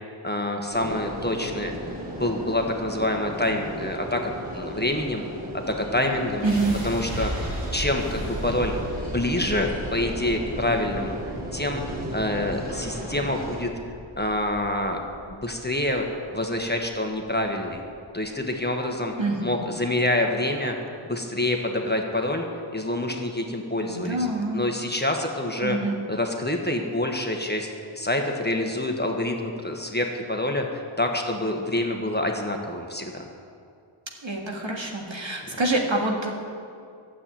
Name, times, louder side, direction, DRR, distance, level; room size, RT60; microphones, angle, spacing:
voice 1, 0.2-1.7 2.2-5.3 5.7-6.4 6.8-8.7 9.1-11.2 11.5-13.7 14.2-15.0 15.3-16.1 16.3-17.8 18.1-19.1 19.4-20.8 21.1-22.4 22.7-24.3 24.5-25.8 26.1-33.2, left 1 dB, 20° left, 2 dB, 1.4 m, -27 dB
sound 1, 0.7-13.6, equal, 20° right, 2.6 m, -36 dB
voice 2, 6.4-6.7 19.2-19.7 23.9-24.6 25.6-25.9 34.2-36.3, right 2 dB, 65° right, 0 dB, 2.0 m, -26 dB
sound 2, 6.4-18.4, right 1 dB, 85° right, 3.2 m, -37 dB
12.0 x 7.6 x 8.6 m, 2.4 s
wide cardioid pair, 45°, 49 cm